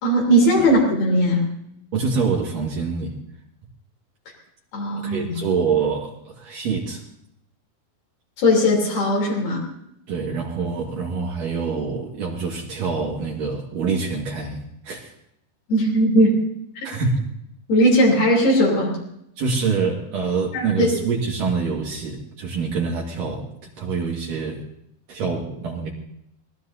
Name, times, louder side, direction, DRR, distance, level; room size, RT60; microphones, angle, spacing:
voice 1, 0.0-1.5 4.7-5.4 8.4-9.6 15.7-16.5 16.8-16.9 17.7-19.0 20.5-20.9, equal, 75° left, -3 dB, 5.3 m, -18 dB
voice 2, 1.9-3.1 5.0-7.0 10.1-15.1 16.8-17.2 19.4-24.6 25.1-25.9, right 5 dB, 60° right, -4 dB, 3.3 m, -25 dB
25.0 x 19.0 x 2.8 m, 0.77 s
omnidirectional pair, 4.5 m